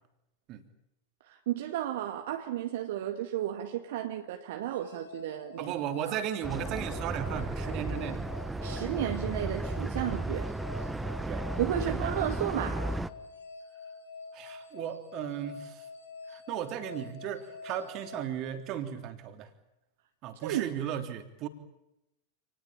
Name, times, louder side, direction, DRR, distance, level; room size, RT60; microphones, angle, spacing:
voice 1, 1.5-5.7 6.1-6.2 8.6-10.5 11.6-12.9 20.4-20.6, right 12 dB, 55° right, 5 dB, 2.1 m, -33 dB
sound 1, 4.6-19.0, left 4 dB, 75° left, 6.1 m, -47 dB
voice 2, 5.6-8.2 8.7-8.8 11.3-11.5 11.9-12.2 14.3-15.9 16.3-19.5 20.2-21.5, right 10 dB, 40° right, 7 dB, 3.3 m, -36 dB
sound 2, 6.4-13.1, right 2 dB, 5° right, 1.2 m, -34 dB
28.5 x 20.0 x 8.8 m, 0.89 s
figure-of-eight pair, 90°, 0 cm